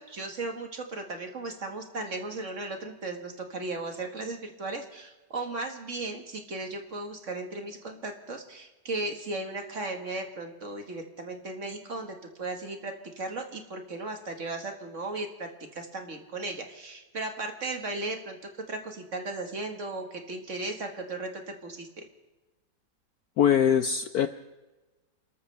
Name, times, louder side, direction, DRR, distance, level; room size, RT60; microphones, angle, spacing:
voice 1, 0.0-18.4 18.7-22.0, right 2 dB, 40° right, 4 dB, 1.8 m, -36 dB
voice 2, 23.4-24.3, left 8 dB, 65° left, 10 dB, 0.9 m, -22 dB
29.5 x 14.0 x 3.3 m, 1.1 s
omnidirectional pair, 2.1 m